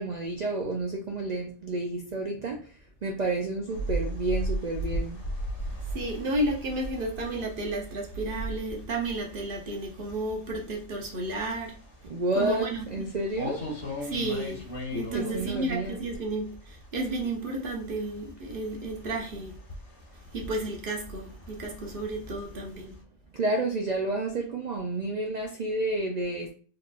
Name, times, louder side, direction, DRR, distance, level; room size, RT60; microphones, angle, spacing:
voice 1, 0.0-2.6 3.0-5.2 12.0-13.6 15.1-16.0 23.3-26.5, right 2 dB, 80° right, 0.3 m, -30 dB
sound 1, 3.7-17.3 17.6-23.0, right 1 dB, 55° left, 2.0 m, -37 dB
voice 2, 5.9-11.7 12.3-13.1 14.0-14.6 14.9-19.5 20.3-22.9, right 2 dB, 45° right, 0.9 m, -32 dB
4.2 x 3.2 x 2.4 m
omnidirectional pair, 1.4 m